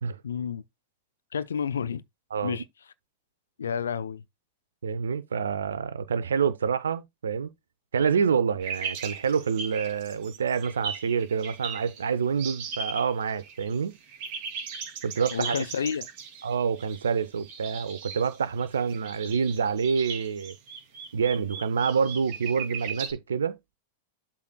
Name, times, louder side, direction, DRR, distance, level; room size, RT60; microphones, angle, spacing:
voice 1, 0.2-0.6 1.3-2.0 2.4-2.6 3.6-4.2 15.3-16.1, left 7 dB, 70° left, 0.7 m, -30 dB
voice 2, 4.8-7.5 7.9-13.9 15.0-15.5 16.4-20.6 21.1-23.6, right 6 dB, 70° right, 0.8 m, -27 dB
sound 1, 8.6-12.0 12.4-13.8 14.0-23.1, right 6 dB, 50° right, 2.8 m, -38 dB
12.0 x 4.3 x 2.3 m
figure-of-eight pair, 90°, 0 cm